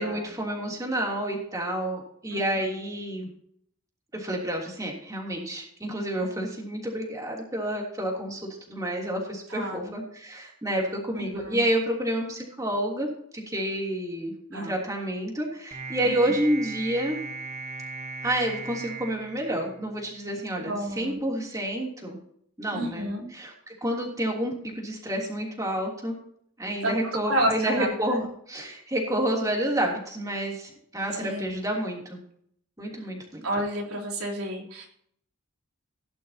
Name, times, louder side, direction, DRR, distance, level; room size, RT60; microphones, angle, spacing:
voice 1, 0.0-3.3 4.1-17.2 18.2-22.2 22.6-26.2 26.6-32.2 32.8-33.4, right 1 dB, 15° right, -1 dB, 3.0 m, -29 dB
voice 2, 9.5-9.9 11.2-11.6 14.5-14.7 16.0-16.1 20.6-21.2 22.7-23.3 26.8-26.9 27.2-28.3 31.2-31.5 32.9-33.1 33.4-34.9, right 1 dB, 80° right, -1 dB, 3.8 m, -30 dB
sound 1, 15.7-20.2, right 4 dB, 35° right, 1.3 m, -38 dB
17.0 x 11.0 x 2.9 m, 0.66 s
head